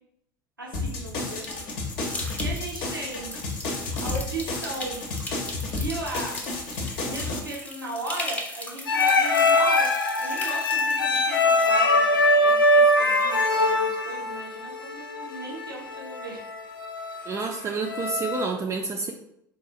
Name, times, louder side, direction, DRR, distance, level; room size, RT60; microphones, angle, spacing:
voice 1, 0.6-1.7 2.3-3.3 4.0-5.0 5.6-6.4 7.0-16.5, right 2 dB, 90° right, -3 dB, 0.6 m, -36 dB
sound 1, 0.7-7.4, left 3 dB, 50° left, 0.7 m, -32 dB
sound 2, 1.3-11.2, left 1 dB, 15° left, 0.6 m, -38 dB
sound 3, 8.9-18.5, left 1 dB, 80° left, 0.4 m, -22 dB
voice 2, 17.3-19.1, right 4 dB, 25° right, 2 dB, 0.4 m, -29 dB
4.0 x 2.3 x 2.7 m, 0.75 s
figure-of-eight pair, 75°, 11 cm